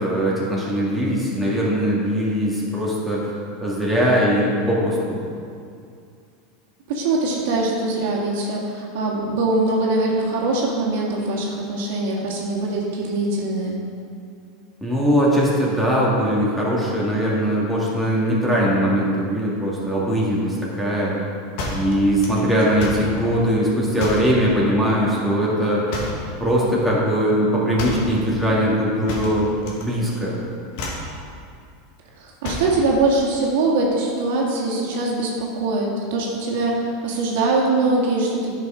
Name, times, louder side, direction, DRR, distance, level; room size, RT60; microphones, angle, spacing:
voice 1, 0.0-3.3 3.6-5.2 14.8-21.1 21.7-25.9 26.4-29.5 29.8-30.4, equal, ahead, -6 dB, 2.3 m, -20 dB
voice 2, 6.9-13.8 32.2-38.5, right 2 dB, 75° right, -2 dB, 1.8 m, -22 dB
sound 1, 21.6-23.1 24.0-24.4 25.9-26.3 27.8-28.1 29.1-29.9 30.1-30.4 30.7-31.1 32.4-32.8, left 2 dB, 65° left, 1.7 m, -30 dB
9.7 x 5.8 x 5.1 m, 2.4 s
supercardioid pair, 120°, 0 cm